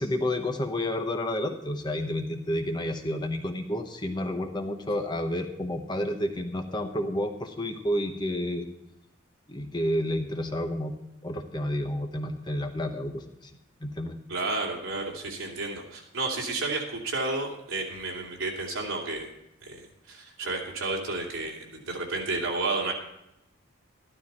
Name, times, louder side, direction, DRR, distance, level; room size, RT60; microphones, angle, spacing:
voice 1, 0.0-8.7 9.5-10.9 11.2-13.5 13.8-14.2, left 1 dB, 20° left, 5 dB, 0.9 m, -30 dB
voice 2, 14.3-19.3 19.6-22.9, right 3 dB, 75° right, -1 dB, 2.9 m, -31 dB
12.5 x 12.0 x 4.3 m, 0.86 s
head